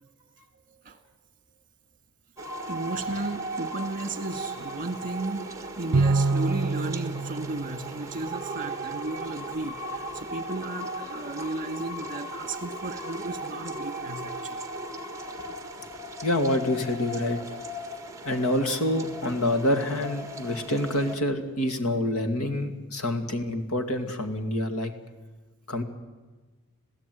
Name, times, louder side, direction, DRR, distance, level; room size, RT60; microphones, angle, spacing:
voice 1, 0.7-1.0 2.7-14.7 15.4-15.5, right 2 dB, 40° right, 8 dB, 2.0 m, -35 dB
sound 1, 2.4-21.2, right 1 dB, 15° right, 1.7 m, -37 dB
Bowed string instrument, 5.9-8.6, right 3 dB, 75° right, 0.6 m, -26 dB
voice 2, 16.2-17.4 18.2-24.9 25.7-25.8, left 1 dB, 70° left, 7 dB, 2.4 m, -27 dB
26.5 x 16.0 x 9.4 m, 1.3 s
head